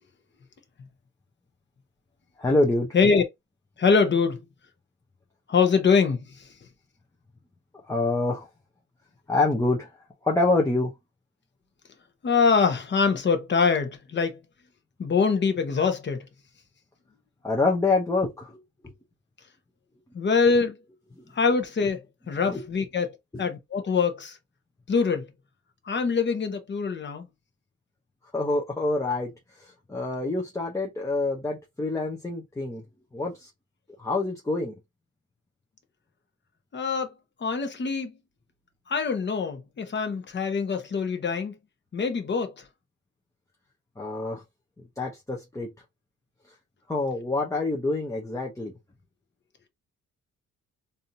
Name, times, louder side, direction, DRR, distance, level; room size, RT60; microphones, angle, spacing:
voice 1, 2.4-2.9 7.9-8.5 9.3-9.9 10.2-10.9 17.4-18.9 22.4-22.6 23.3-23.5 28.3-29.3 29.6-32.8 33.1-33.5 34.0-34.7 44.0-44.4 45.0-45.7 46.9-48.7, left 2 dB, 10° left, 0.8 m, -26 dB
voice 2, 3.8-4.4 5.5-6.3 12.2-14.4 15.0-16.3 20.1-20.8 21.3-24.4 24.9-25.3 25.9-27.3 36.7-37.1 37.4-38.1 38.9-41.6 41.9-42.5, left 5 dB, 35° left, 1.0 m, -24 dB
3.5 x 2.7 x 2.7 m
cardioid pair, 90°, 30 cm